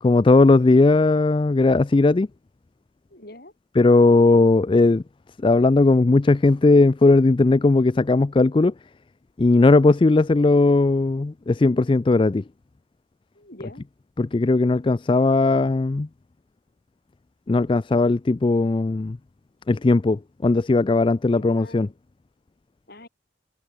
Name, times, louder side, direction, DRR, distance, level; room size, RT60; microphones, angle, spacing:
voice 1, 0.0-2.3 3.8-5.0 5.4-8.7 9.4-12.4 14.2-16.1 17.5-19.2 19.7-21.9, left 3 dB, 25° left, 0.3 m, -18 dB
voice 2, 3.1-3.5 13.3-13.8 21.3-21.9 22.9-23.1, left 1 dB, 50° left, 6.6 m, -43 dB
head